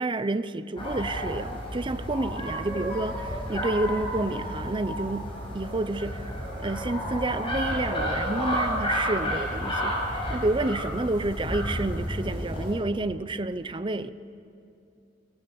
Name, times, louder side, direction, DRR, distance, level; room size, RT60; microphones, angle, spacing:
voice 1, 0.0-6.3 6.6-14.1, right 2 dB, 25° right, 0.6 m, -29 dB
sound 1, 0.8-12.7, equal, 30° left, 6.3 m, -31 dB
22.0 x 18.0 x 7.1 m
head